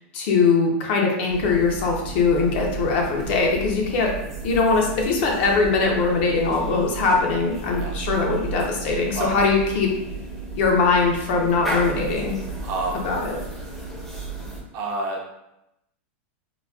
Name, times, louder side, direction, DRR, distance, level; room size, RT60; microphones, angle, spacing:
voice 1, 0.1-4.1 4.4-9.9 10.5-12.4 13.0-13.4, left 4 dB, 60° left, 0 dB, 0.7 m, -21 dB
sound 1, 1.3-14.6, right 3 dB, ahead, 0.6 m, -33 dB
voice 2, 12.6-13.0 14.7-15.2, right 2 dB, 40° right, -1 dB, 0.6 m, -28 dB
3.9 x 2.1 x 2.3 m, 0.88 s
supercardioid pair, 150°, 7 cm